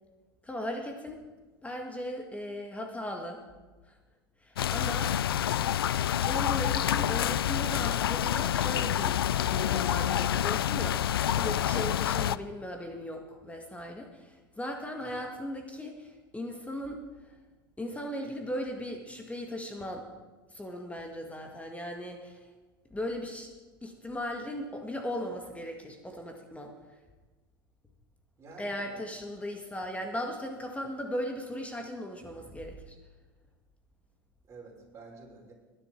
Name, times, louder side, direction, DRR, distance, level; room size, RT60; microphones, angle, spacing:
voice 1, 0.4-1.2 1.6-3.4 3.8-3.9 4.4-5.1 6.2-9.2 9.4-17.0 17.8-20.0 20.5-22.4 22.9-23.5 23.8-26.7 28.6-33.0, equal, 10° left, 3 dB, 1.9 m, -37 dB
sound 1, 4.6-12.4, left 11 dB, 85° left, 0.4 m, -28 dB
voice 2, 5.5-5.8 15.0-15.3 28.4-29.0 34.5-35.5, right 3 dB, 25° right, -3 dB, 5.5 m, -50 dB
20.0 x 10.5 x 4.6 m, 1.3 s
hypercardioid pair, 85°, 12 cm